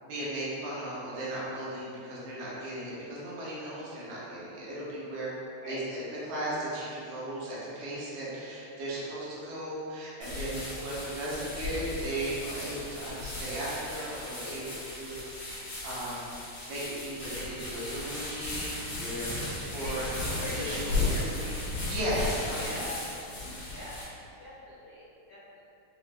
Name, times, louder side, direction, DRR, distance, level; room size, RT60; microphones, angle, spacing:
voice 1, 0.0-5.3 5.7-15.2 15.8-16.4 16.7-19.3 19.7-21.6 21.9-22.9 23.3-23.6, right 1 dB, 85° right, -8 dB, 2.2 m, -36 dB
voice 2, 5.6-6.0 19.7-20.1 20.3-21.3 22.5-23.0 23.7-24.0 24.4-25.6, left 1 dB, 80° left, -14 dB, 1.0 m, -42 dB
sound 1, 10.2-24.0, left 2 dB, 55° left, 1.3 m, -35 dB
5.4 x 2.0 x 2.4 m, 2.7 s
omnidirectional pair, 3.3 m